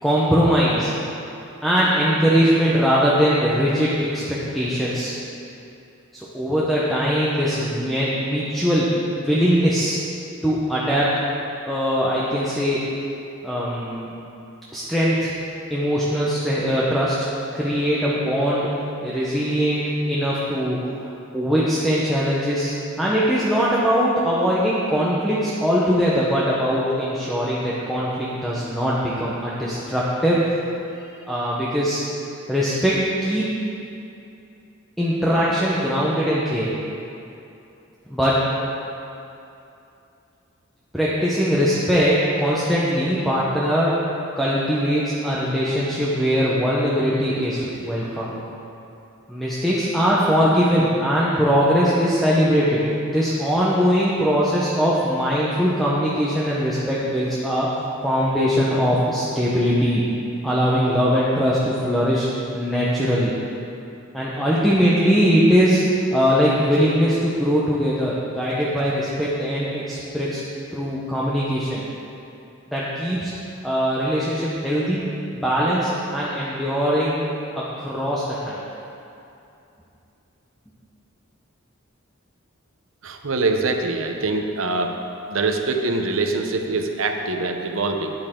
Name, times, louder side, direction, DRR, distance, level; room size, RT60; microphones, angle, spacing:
voice 1, 0.0-0.9 1.6-5.1 6.1-8.9 9.2-10.0 10.4-11.1 11.7-12.8 13.4-14.1 14.7-15.3 15.7-17.3 17.5-18.7 19.0-21.1 21.3-30.4 31.3-32.0 32.5-33.5 35.0-36.7 38.1-38.4 40.9-44.0 44.4-48.4 49.3-57.7 58.0-60.0 60.4-62.3 62.5-63.3 64.1-65.8 66.1-70.4 70.7-71.8 72.7-73.3 73.6-75.0 75.3-77.3 77.8-78.6, equal, ahead, -8 dB, 1.0 m, -21 dB
voice 2, 83.0-85.0 85.3-88.1, right 3 dB, 75° right, 4 dB, 0.9 m, -24 dB
12.5 x 9.0 x 3.8 m, 2.7 s
head